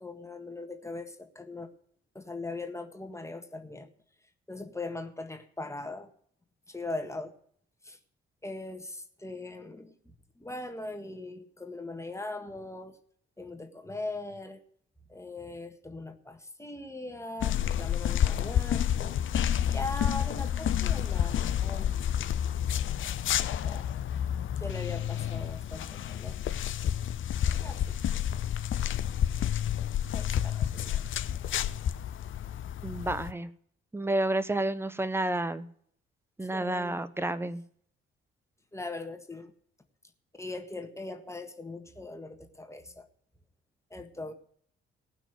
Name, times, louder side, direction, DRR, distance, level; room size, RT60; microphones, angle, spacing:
voice 1, 0.0-1.7 2.2-3.9 4.5-6.1 6.7-7.4 7.8-8.0 8.4-10.0 10.4-13.0 13.4-14.6 15.1-19.2 19.7-21.9 23.6-23.9 24.3-26.4 27.6-28.3 30.1-31.0 36.5-37.0 38.7-39.5 40.3-43.1 43.9-44.3, left 2 dB, 10° left, 6 dB, 1.6 m, -40 dB
sound 1, 17.4-33.3, left 10 dB, 40° left, 0.6 m, -30 dB
voice 2, 32.8-33.5 33.9-35.7 36.4-37.6, right 1 dB, 5° right, 14 dB, 0.8 m, -30 dB
18.0 x 6.1 x 7.7 m, 0.63 s
figure-of-eight pair, 40°, 32 cm